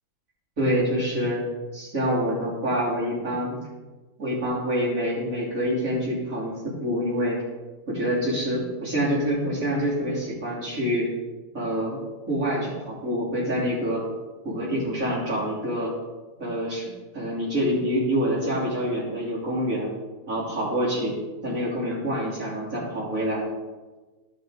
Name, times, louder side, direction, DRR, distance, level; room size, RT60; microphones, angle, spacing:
voice 1, 0.6-1.4 1.7-3.6 4.2-7.4 7.9-11.1 11.5-12.0 12.3-14.0 14.4-15.9 16.4-19.9 20.3-21.2 21.4-23.4, equal, 85° right, -7 dB, 3.5 m, -26 dB
12.5 x 5.6 x 3.8 m, 1.2 s
omnidirectional pair, 1.4 m